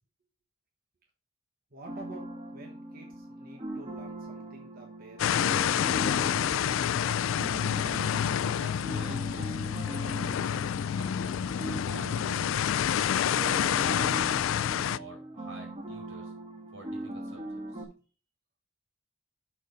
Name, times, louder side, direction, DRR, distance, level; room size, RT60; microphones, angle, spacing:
voice 1, 1.7-6.7, right 2 dB, 45° right, 1 dB, 1.3 m, -50 dB
sound 1, 1.9-17.8, right 1 dB, 30° right, 1.4 m, -40 dB
sound 2, 5.2-15.0, left 9 dB, 75° left, 0.3 m, -28 dB
voice 2, 8.4-9.5 9.8-10.2 10.9-12.9 13.3-14.4 14.8-16.3 16.7-17.8, right 2 dB, 85° right, 1 dB, 4.8 m, -50 dB
6.6 x 6.6 x 5.0 m, 0.36 s
head